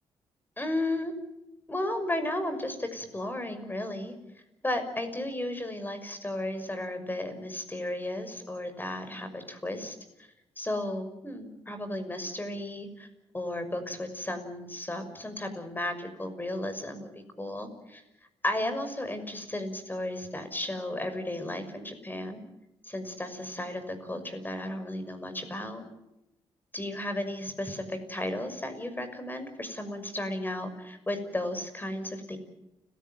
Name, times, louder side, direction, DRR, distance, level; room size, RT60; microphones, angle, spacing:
voice 1, 0.6-1.1 1.7-9.9 10.6-13.1 13.3-17.1 17.4-18.0 18.4-22.4 22.8-25.8 26.7-32.4, left 1 dB, 15° left, 8 dB, 6.1 m, -34 dB
30.0 x 15.5 x 9.2 m, 0.92 s
cardioid pair, 80°, 11 cm